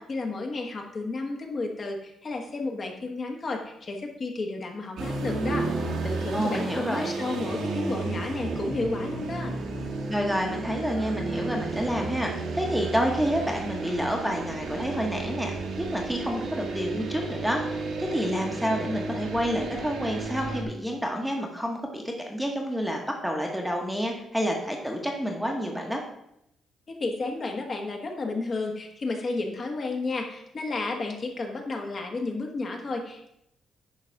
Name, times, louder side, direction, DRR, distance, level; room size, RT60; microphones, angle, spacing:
voice 1, 0.1-9.6 26.9-33.3, left 3 dB, 35° left, 2 dB, 1.4 m, -32 dB
sound 1, 5.0-20.6, right 3 dB, 85° right, 1.8 m, -33 dB
voice 2, 6.3-7.1 10.1-22.0 22.3-26.0, equal, ahead, 1 dB, 1.2 m, -29 dB
10.5 x 4.0 x 5.9 m, 0.79 s
cardioid pair, 145°, 0 cm